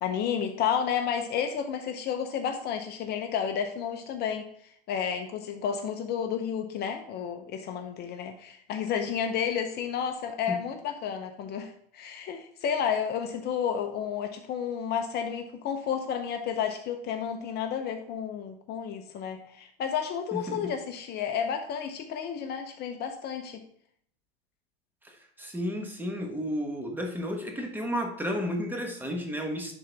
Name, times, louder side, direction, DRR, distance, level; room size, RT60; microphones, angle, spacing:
voice 1, 0.0-4.5 4.9-23.6, left 8 dB, 35° left, 6 dB, 0.7 m, -31 dB
voice 2, 25.0-29.7, equal, 5° right, 2 dB, 1.2 m, -32 dB
10.5 x 3.9 x 3.3 m, 0.67 s
supercardioid pair, 135°, 31 cm